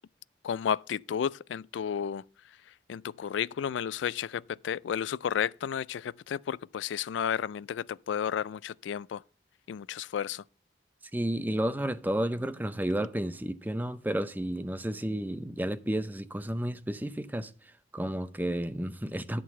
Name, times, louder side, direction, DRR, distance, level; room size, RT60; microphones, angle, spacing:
voice 1, 0.4-2.2 2.9-9.2 9.7-10.4, left 8 dB, 90° left, 0.3 m, -32 dB
voice 2, 11.1-19.4, right 1 dB, 10° right, 0.5 m, -32 dB
11.0 x 3.8 x 7.4 m
head